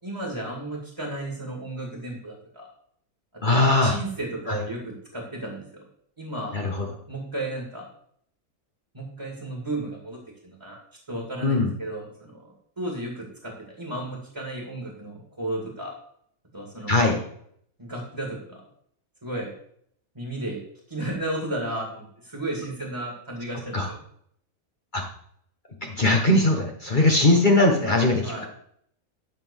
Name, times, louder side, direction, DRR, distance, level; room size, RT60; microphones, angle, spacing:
voice 1, 0.0-2.7 3.8-5.8 6.2-6.7 7.1-7.8 8.9-10.8 11.1-15.9 16.5-17.2 17.8-18.6 19.2-19.5 20.1-20.6 20.9-24.0 28.2-28.5, right 1 dB, 20° right, -1 dB, 2.5 m, -34 dB
voice 2, 3.4-4.0 4.5-4.6 6.5-6.9 11.4-11.7 16.9-17.2 23.7-23.9 24.9-25.0 25.8-28.5, left 2 dB, 35° left, 1 dB, 1.5 m, -20 dB
12.5 x 4.3 x 7.2 m, 0.66 s
omnidirectional pair, 1.5 m